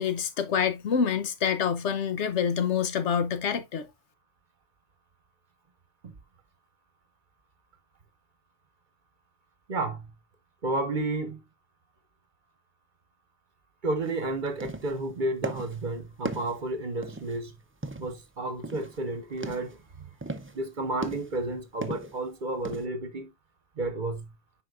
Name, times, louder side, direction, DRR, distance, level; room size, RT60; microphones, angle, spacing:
voice 1, 0.0-3.9, left 7 dB, 85° left, 1.1 m, -27 dB
voice 2, 9.7-10.1 10.6-11.4 13.8-17.5 18.0-20.1 20.5-23.3 23.8-24.3, right 2 dB, 45° right, 1.0 m, -31 dB
sound 1, 14.0-14.2 14.5-15.0 15.4-15.8 16.2-17.4 17.8-18.2 18.6-19.0 19.3-19.8 20.2-20.6 21.0-21.5 21.8-22.2 22.6-22.9, right 2 dB, 15° right, 0.4 m, -37 dB
8.1 x 5.1 x 2.4 m
omnidirectional pair, 1.2 m